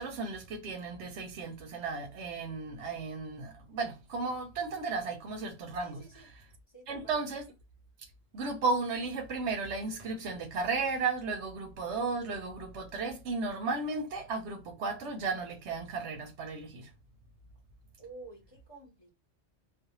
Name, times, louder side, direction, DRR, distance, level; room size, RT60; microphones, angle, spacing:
voice 1, 0.0-6.0 6.9-7.4 8.3-16.9, right 4 dB, 90° right, 0.9 m, -34 dB
voice 2, 5.8-6.3 6.7-7.2 18.0-19.1, right 3 dB, 25° left, 0.8 m, -50 dB
2.6 x 2.0 x 2.8 m
omnidirectional pair, 1.2 m